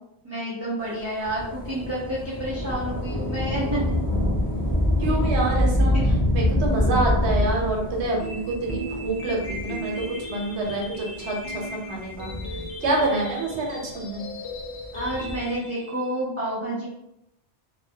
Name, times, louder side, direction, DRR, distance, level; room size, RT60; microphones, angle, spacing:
voice 1, 0.2-3.8 5.9-6.1 14.9-16.9, right 1 dB, 20° right, -9 dB, 0.4 m, -29 dB
Thunder / Rain, 1.2-10.2 10.9-11.0 12.0-13.3 14.8-15.5, left 1 dB, 25° left, 0.6 m, -25 dB
voice 2, 5.0-6.0 6.3-9.9 10.3-12.3 12.8-14.2, right 2 dB, 75° right, -1 dB, 1.0 m, -27 dB
sound 1, 8.2-16.2, left 1 dB, 75° left, 0.9 m, -37 dB
2.2 x 2.2 x 2.6 m, 0.82 s
omnidirectional pair, 1.1 m